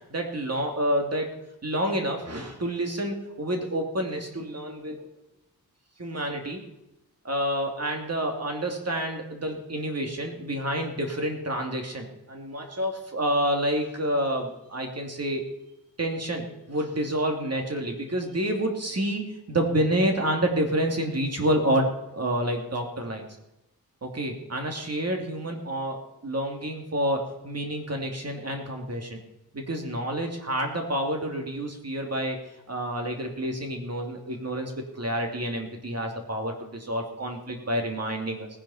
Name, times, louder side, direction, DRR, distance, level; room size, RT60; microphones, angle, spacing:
voice 1, 0.1-5.1 6.0-6.6 7.2-15.4 16.0-23.2 24.0-29.2 29.5-32.4 32.7-38.5, right 1 dB, 40° right, 2 dB, 2.6 m, -28 dB
18.5 x 10.5 x 4.3 m, 0.92 s
wide cardioid pair, 100°, 37 cm